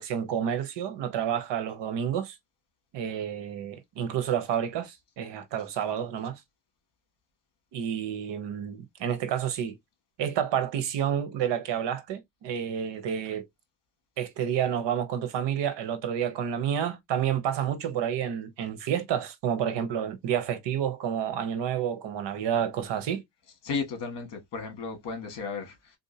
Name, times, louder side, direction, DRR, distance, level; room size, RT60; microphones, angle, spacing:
voice 1, 0.0-2.4 2.9-6.4 7.7-9.8 10.2-13.5 14.2-23.2, right 9 dB, 65° right, 0.9 m, -29 dB
voice 2, 23.6-26.0, left 5 dB, 60° left, 1.7 m, -34 dB
3.8 x 2.7 x 2.7 m
cardioid pair, 175°, 47 cm